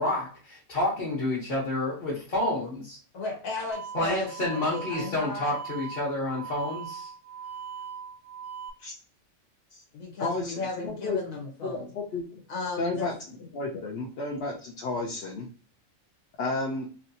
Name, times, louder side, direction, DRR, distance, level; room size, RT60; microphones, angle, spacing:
voice 1, 0.0-3.0 3.9-7.1, left 1 dB, 40° left, -7 dB, 1.1 m, -29 dB
voice 2, 3.1-5.5 9.9-11.9 12.5-13.1, left 3 dB, 85° left, 0 dB, 1.5 m, -35 dB
sound 1, 3.7-8.7, right 7 dB, 65° right, 0.8 m, -40 dB
voice 3, 10.2-11.2 11.6-12.4 12.8-15.5 16.4-16.9, left 3 dB, 60° left, -3 dB, 0.7 m, -32 dB
3.1 x 2.9 x 2.7 m, 0.41 s
omnidirectional pair, 1.4 m